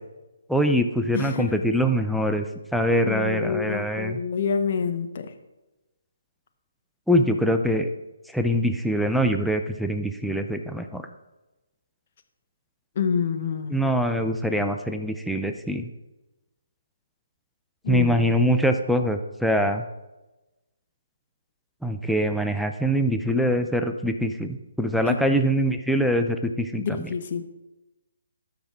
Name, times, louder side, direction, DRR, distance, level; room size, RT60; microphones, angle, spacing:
voice 1, 0.5-2.5 2.7-4.2 7.1-7.9 8.3-11.1 13.7-15.9 17.9-19.8 21.8-27.1, equal, ahead, 5 dB, 0.5 m, -23 dB
voice 2, 1.1-1.6 3.0-5.3 13.0-13.8 17.8-18.2 25.1-25.3 26.8-27.5, left 6 dB, 50° left, 8 dB, 0.9 m, -27 dB
13.0 x 5.9 x 3.7 m, 1.0 s
hypercardioid pair, 150°, 0 cm